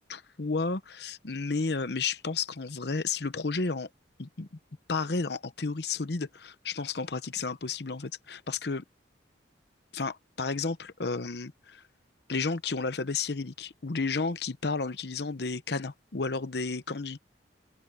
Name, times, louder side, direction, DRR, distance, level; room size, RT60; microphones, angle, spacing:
voice 1, 0.1-3.9 4.2-4.5 4.9-8.8 9.9-11.8 12.3-17.2, left 4 dB, 60° left, 0.8 m, -32 dB
open air
head